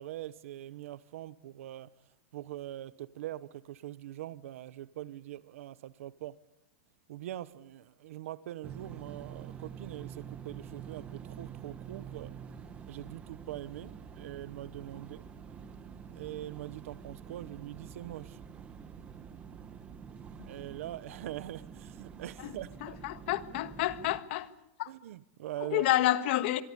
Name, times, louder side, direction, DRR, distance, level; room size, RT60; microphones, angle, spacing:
voice 1, 0.0-1.9 2.3-6.4 7.1-12.3 12.9-15.3 16.1-18.4 20.4-23.0 24.9-25.9, right 14 dB, 75° right, 1.0 m, -43 dB
sound 1, 8.6-24.2, right 7 dB, 15° right, 1.4 m, -47 dB
voice 2, 22.8-24.5 24.8-24.9 25.6-26.6, left 14 dB, 50° left, 1.6 m, -29 dB
25.0 x 22.5 x 8.7 m
supercardioid pair, 175°, 7 cm